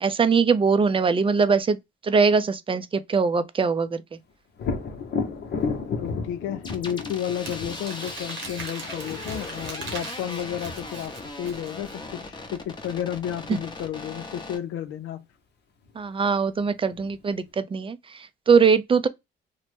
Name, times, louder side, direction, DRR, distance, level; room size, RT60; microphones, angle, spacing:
voice 1, 0.0-1.8 2.0-4.2 13.5-13.6 16.0-19.1, right 5 dB, 25° right, 0.4 m, -22 dB
Thunder, 4.6-12.3 15.9-16.0 16.5-17.4, left 5 dB, 60° left, 0.8 m, -34 dB
voice 2, 6.0-15.2, left 10 dB, 90° left, 0.5 m, -32 dB
sound 1, 6.6-14.6, left 3 dB, 20° left, 0.7 m, -39 dB
Crumpling crinkling, 7.4-12.0, right 4 dB, 80° right, 1.0 m, -40 dB
3.0 x 2.1 x 3.1 m
cardioid pair, 90°, 20 cm